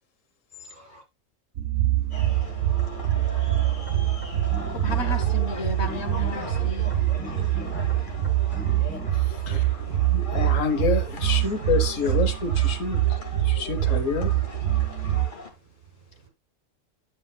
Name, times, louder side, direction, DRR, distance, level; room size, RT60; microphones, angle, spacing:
voice 1, 0.5-1.0 2.0-5.0 8.3-8.7 9.2-9.9 11.4-11.6 12.0-12.1 13.9-14.0 15.1-16.3, right 1 dB, 45° right, 5.8 m, -54 dB
sound 1, 1.6-15.3, right 14 dB, 85° right, 1.1 m, -25 dB
sound 2, 2.1-15.5, left 3 dB, 40° left, 1.9 m, -40 dB
sound 3, 3.8-9.1, left 1 dB, 10° left, 1.6 m, -40 dB
voice 2, 4.7-6.9, left 2 dB, 60° left, 1.3 m, -33 dB
voice 3, 9.1-9.7 10.0-14.4, left 5 dB, 80° left, 1.4 m, -28 dB
9.9 x 8.1 x 2.2 m
omnidirectional pair, 1.3 m